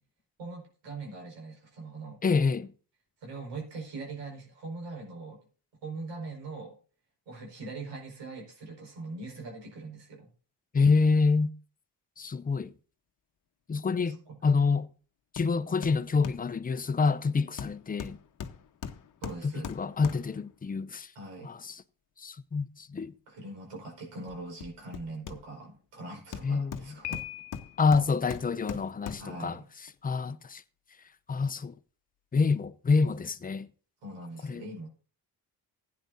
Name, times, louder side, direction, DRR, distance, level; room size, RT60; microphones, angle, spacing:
voice 1, 0.4-2.2 3.2-5.4 5.8-6.8 7.3-10.3 14.0-14.4 19.2-19.7 21.2-21.5 23.3-27.2 29.2-29.6 34.0-34.9, right 3 dB, 85° right, 5.3 m, -41 dB
voice 2, 2.2-2.7 10.7-11.5 12.2-12.7 13.7-14.2 14.4-14.9 15.3-18.2 19.4-21.1 21.4-21.8 22.2-23.1 26.4-27.0 27.8-29.6 30.0-30.6 31.3-31.7 32.3-33.7 34.4-34.6, left 4 dB, 20° left, 0.6 m, -27 dB
Hammer, 15.4-15.5 15.8-16.5 17.6-20.5 24.3-25.8 26.3-29.4 29.9-30.0, left 7 dB, 45° left, 1.0 m, -41 dB
Piano, 27.0-28.0, left 17 dB, 80° left, 0.6 m, -40 dB
15.5 x 9.7 x 2.7 m
cardioid pair, 75°, 42 cm